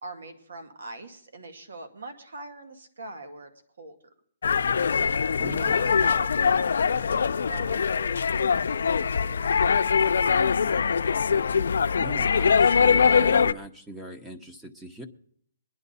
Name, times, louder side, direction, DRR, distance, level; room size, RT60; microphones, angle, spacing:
voice 1, 0.0-3.5 3.8-3.9 5.4-8.2 8.5-10.5, right 2 dB, 90° right, 7 dB, 2.4 m, -42 dB
sound 1, 4.4-13.5, left 6 dB, 75° left, 0.5 m, -22 dB
voice 2, 5.4-5.9 12.0-15.1, equal, 5° right, 5 dB, 0.9 m, -41 dB
22.0 x 10.0 x 4.1 m, 0.63 s
hypercardioid pair, 165°, 0 cm